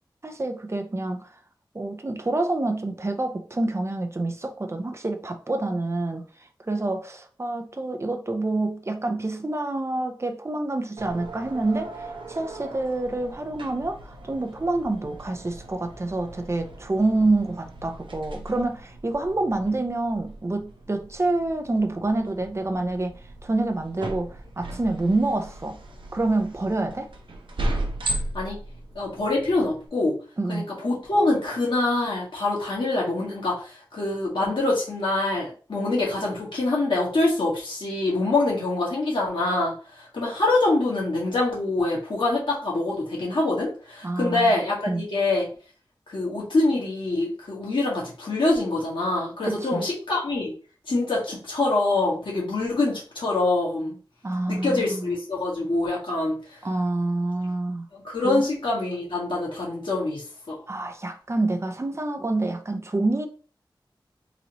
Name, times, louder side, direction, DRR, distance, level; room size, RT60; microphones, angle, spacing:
voice 1, 0.2-1.3 1.7-6.2 6.7-25.8 26.1-27.1 30.4-30.7 44.0-44.5 44.9-45.0 49.4-49.8 54.2-55.1 56.6-57.9 58.2-58.4 60.7-63.3, right 2 dB, 35° right, 0.5 m, -27 dB
sound 1, 11.0-29.9, right 1 dB, 75° right, 0.7 m, -37 dB
voice 2, 29.0-30.1 30.5-45.5 46.1-50.5 50.9-54.0 54.5-56.4 57.9-60.6, left 2 dB, 85° left, 1.7 m, -25 dB
3.9 x 2.9 x 2.9 m
wide cardioid pair, 70°, 8 cm